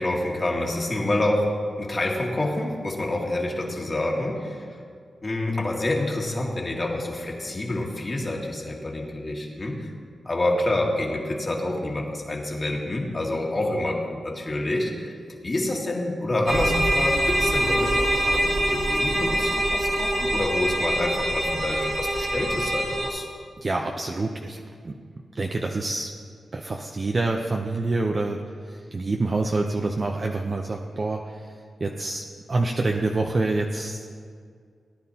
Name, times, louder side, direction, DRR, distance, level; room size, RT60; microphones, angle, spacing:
voice 1, 0.0-4.7 5.2-9.9 10.3-15.1 15.4-23.3, left 1 dB, 35° left, -1 dB, 2.0 m, -27 dB
sound 1, 16.5-23.1, right 1 dB, 65° right, 3.2 m, -24 dB
voice 2, 23.6-24.9 25.3-26.1 26.5-31.5 31.8-34.1, right 2 dB, 40° right, 2 dB, 0.7 m, -27 dB
18.0 x 10.5 x 2.9 m, 2.1 s
cardioid pair, 85°, 0 cm